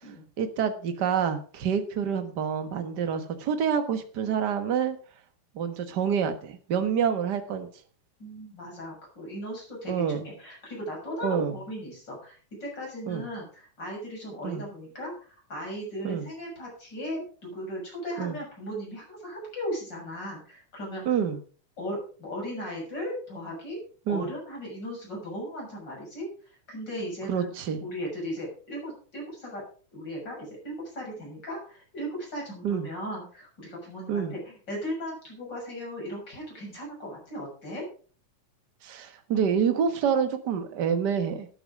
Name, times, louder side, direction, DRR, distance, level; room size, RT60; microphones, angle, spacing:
voice 1, 0.4-5.0 5.5-7.7 9.9-10.3 11.2-11.5 13.1-13.2 14.4-14.6 16.0-16.3 18.2-18.4 21.0-21.4 24.1-24.3 27.3-27.8 32.6-32.9 34.1-34.3 38.8-41.5, right 7 dB, 45° right, 9 dB, 1.4 m, -27 dB
voice 2, 8.2-21.2 21.8-23.8 24.1-27.5 27.8-29.6 29.9-37.9, equal, 35° left, -1 dB, 7.2 m, -37 dB
13.0 x 8.9 x 5.0 m, 0.40 s
omnidirectional pair, 3.5 m